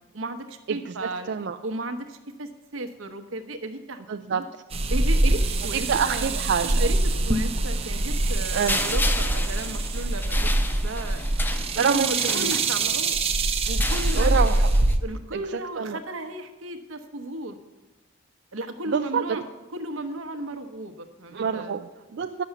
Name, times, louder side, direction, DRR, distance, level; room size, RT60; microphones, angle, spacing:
voice 1, 0.1-1.3 1.6-4.0 4.9-6.3 6.8-7.0 7.3-11.2 11.7-13.2 13.7-14.6 15.0-17.6 18.5-19.4 19.7-21.7, right 2 dB, 85° right, 7 dB, 1.0 m, -34 dB
voice 2, 0.7-1.6 4.1-4.4 5.9-6.9 8.5-8.8 11.8-12.7 14.1-14.7 15.3-16.0 18.9-19.4 21.3-22.4, right 6 dB, 55° right, 7 dB, 0.4 m, -27 dB
sound 1, 4.7-15.0, right 2 dB, 30° right, 0.7 m, -24 dB
sound 2, 8.7-13.1 13.7-14.9, left 2 dB, 10° left, 0.4 m, -33 dB
10.5 x 7.0 x 6.9 m, 1.2 s
head